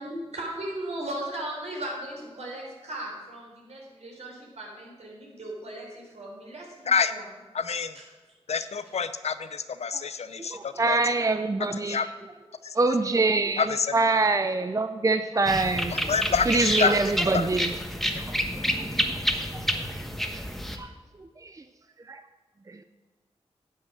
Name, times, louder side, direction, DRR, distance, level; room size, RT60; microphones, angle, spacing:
voice 1, 0.0-7.2 7.9-8.0 8.6-8.7, right 1 dB, 70° right, -2 dB, 3.8 m, -37 dB
voice 2, 7.5-7.9 8.5-11.0 11.9-12.1 12.6-12.7 13.6-13.9 15.9-17.0 17.3-17.5 18.2-18.3, left 6 dB, 70° left, 12 dB, 0.6 m, -27 dB
voice 3, 10.4-12.1 12.7-16.1 16.4-17.7 18.3-18.4 19.5-19.8 20.7-20.9 21.2-21.6 22.1-22.2 22.7-22.8, right 3 dB, 30° right, 9 dB, 0.6 m, -25 dB
sound 1, 15.5-20.8, equal, ahead, 1.3 m, -29 dB
10.5 x 7.5 x 6.0 m, 1.3 s
cardioid pair, 45°, 12 cm